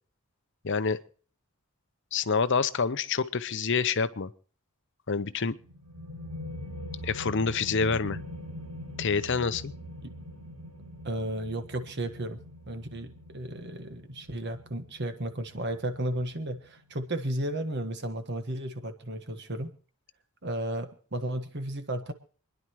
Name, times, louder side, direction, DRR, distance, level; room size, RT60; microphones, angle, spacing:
voice 1, 0.6-1.0 2.1-4.3 5.1-5.6 7.0-8.2 9.0-9.7, left 5 dB, 55° left, 13 dB, 0.7 m, -27 dB
sound 1, 5.6-16.9, left 1 dB, 85° right, 7.1 m, -43 dB
voice 2, 11.0-12.4 12.7-19.7 20.4-22.1, right 1 dB, 50° right, 9 dB, 1.5 m, -34 dB
27.5 x 10.5 x 3.1 m, 0.43 s
head